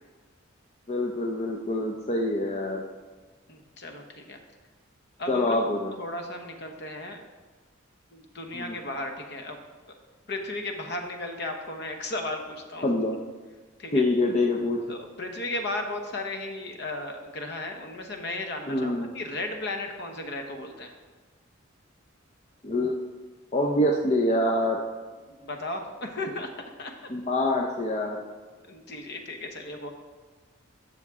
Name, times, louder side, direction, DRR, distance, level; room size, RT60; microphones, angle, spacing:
voice 1, 0.9-2.8 5.3-5.9 8.5-8.7 12.8-13.2 13.9-14.8 18.7-19.1 22.6-23.0 23.5-24.8 27.1-28.2, left 1 dB, 35° left, 0 dB, 0.6 m, -25 dB
voice 2, 3.5-4.4 5.2-5.6 6.0-7.2 8.1-9.6 10.3-12.9 13.8-14.0 14.9-20.9 25.3-26.9 28.7-29.9, left 2 dB, 55° left, 4 dB, 1.0 m, -35 dB
12.0 x 6.7 x 3.6 m, 1.3 s
head